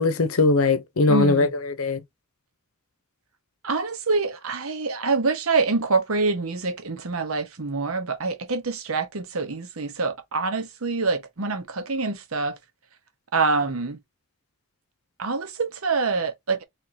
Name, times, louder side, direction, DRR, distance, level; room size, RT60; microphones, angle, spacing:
voice 1, 0.0-2.0, left 3 dB, 90° left, 0.8 m, -20 dB
voice 2, 1.1-1.5 3.6-12.6 13.3-14.0 15.2-16.6, right 4 dB, 85° right, 1.0 m, -25 dB
3.7 x 3.6 x 2.8 m
head